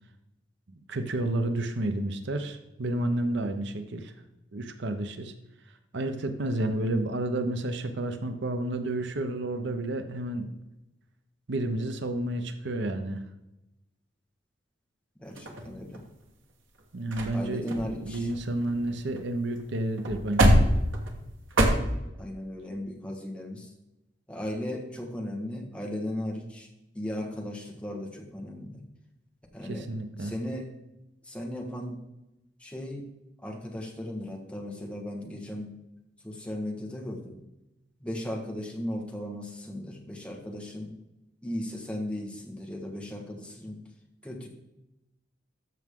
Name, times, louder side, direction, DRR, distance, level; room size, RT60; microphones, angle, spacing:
voice 1, 0.7-4.1 4.5-5.3 5.9-10.5 11.5-13.2 16.9-20.7 29.6-30.3, right 1 dB, 65° right, 8 dB, 0.8 m, -31 dB
voice 2, 15.2-16.0 17.3-18.3 22.2-23.7 24.3-26.7 26.9-28.8 29.5-29.8 30.2-30.7 31.2-32.0 32.6-33.1 33.4-35.7 36.2-37.4 38.0-40.9 41.4-43.8 44.2-44.5, left 1 dB, 5° left, 1 dB, 1.5 m, -36 dB
sound 1, 15.4-16.2 16.8-16.9 17.1-17.4 17.7-19.2 19.5-19.6 20.0-21.7, equal, 85° right, 1.5 m, -25 dB
13.5 x 6.2 x 3.7 m, 0.96 s
head